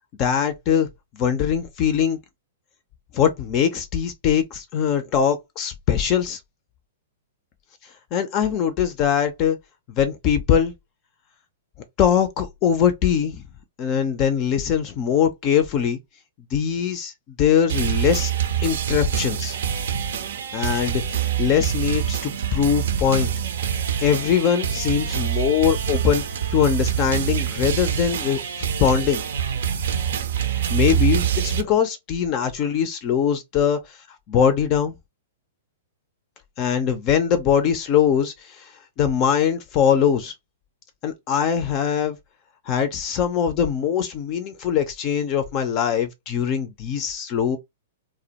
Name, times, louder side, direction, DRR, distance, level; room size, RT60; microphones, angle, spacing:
voice 1, 0.2-0.9 1.1-2.2 3.1-6.4 8.1-9.6 10.0-10.7 12.0-13.4 13.8-16.0 16.5-17.1 17.4-18.3 18.6-19.6 20.5-23.3 24.0-26.2 26.5-29.2 30.7-34.0 34.3-34.9 36.6-38.7 39.0-40.3 41.0-42.2 42.7-47.6, left 8 dB, 40° left, 0.4 m, -22 dB
sound 1, 17.7-31.6, right 9 dB, 65° right, 0.5 m, -25 dB
2.1 x 2.1 x 2.8 m
hypercardioid pair, 110°, 0 cm